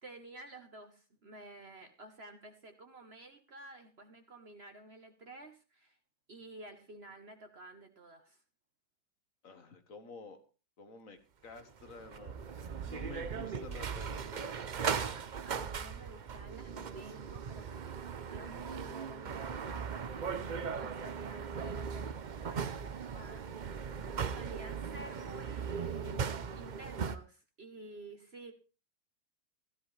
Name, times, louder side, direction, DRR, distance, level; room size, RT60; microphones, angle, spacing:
voice 1, 0.0-6.0 6.3-8.4 15.5-28.5, right 2 dB, 40° right, 5 dB, 1.3 m, -52 dB
voice 2, 9.4-10.4 10.8-14.6 23.9-24.2, left 4 dB, 55° left, 8 dB, 1.8 m, -51 dB
sound 1, 11.6-27.2, right 6 dB, 80° right, 0.4 m, -38 dB
15.5 x 13.0 x 3.3 m, 0.33 s
omnidirectional pair, 1.8 m